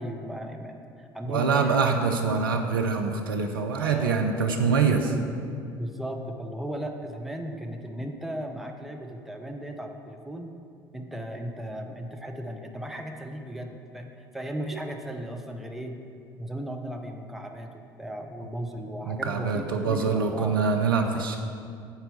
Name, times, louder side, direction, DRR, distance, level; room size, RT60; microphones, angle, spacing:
voice 1, 0.0-2.0 3.8-4.2 4.5-4.7 5.0-5.3 5.8-10.5 10.9-14.1 14.3-16.0 16.4-20.6, right 1 dB, ahead, 3 dB, 0.9 m, -36 dB
voice 2, 1.3-5.1 14.7-14.8 19.1-21.4, right 5 dB, 80° right, 3 dB, 0.6 m, -25 dB
8.9 x 4.5 x 6.9 m, 2.4 s
figure-of-eight pair, 60°, 12 cm